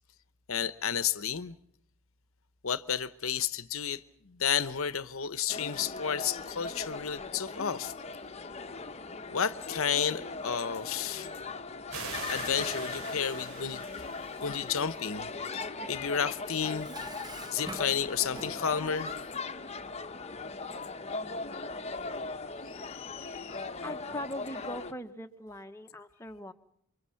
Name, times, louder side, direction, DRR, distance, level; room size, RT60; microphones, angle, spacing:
voice 1, 0.5-1.6 2.6-7.9 9.3-11.3 12.3-13.8 14.4-15.3 15.9-16.9 17.5-19.1 22.6-23.6, left 7 dB, 65° left, 0.9 m, -32 dB
sound 1, 5.5-24.9, left 3 dB, 30° left, 1.0 m, -39 dB
sound 2, 11.9-15.2, right 4 dB, 85° right, 8.0 m, -43 dB
Dishes pots and pans, 16.5-18.9, right 2 dB, 20° right, 1.0 m, -46 dB
voice 2, 23.8-26.5, left 1 dB, 10° left, 1.1 m, -41 dB
28.5 x 24.0 x 5.7 m
head